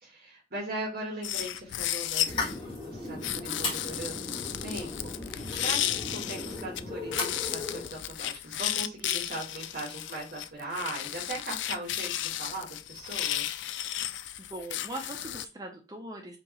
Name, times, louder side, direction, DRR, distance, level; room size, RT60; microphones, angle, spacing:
voice 1, 0.0-13.5, right 1 dB, 55° right, -3 dB, 1.5 m, -39 dB
sound 1, 1.2-2.6 3.2-6.8 7.1-15.4, left 12 dB, 80° left, 0.3 m, -34 dB
sound 2, 2.3-7.9, left 3 dB, 30° left, 1.5 m, -36 dB
voice 2, 14.4-16.4, right 1 dB, 20° right, 2 dB, 0.7 m, -40 dB
5.0 x 3.0 x 2.9 m, 0.30 s
head